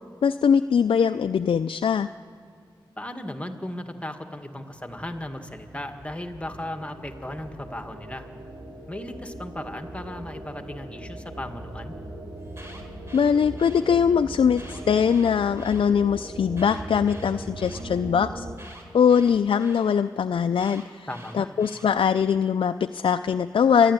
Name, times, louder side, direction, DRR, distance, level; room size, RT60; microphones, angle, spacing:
voice 1, 0.2-2.1 13.1-18.4 18.9-21.1 21.3-23.9, left 7 dB, 80° left, 8 dB, 0.4 m, -22 dB
voice 2, 3.0-8.3 8.9-11.9 21.1-21.5, left 1 dB, 15° left, 6 dB, 1.9 m, -36 dB
sound 1, 4.8-18.5, right 1 dB, 75° right, 4.0 m, -40 dB
Alarm, 12.4-13.8 14.5-15.8 16.5-17.8 18.6-19.8 20.6-21.9, right 1 dB, 30° right, 4.3 m, -47 dB
26.0 x 11.5 x 9.6 m, 2.4 s
cardioid pair, 50°, 9 cm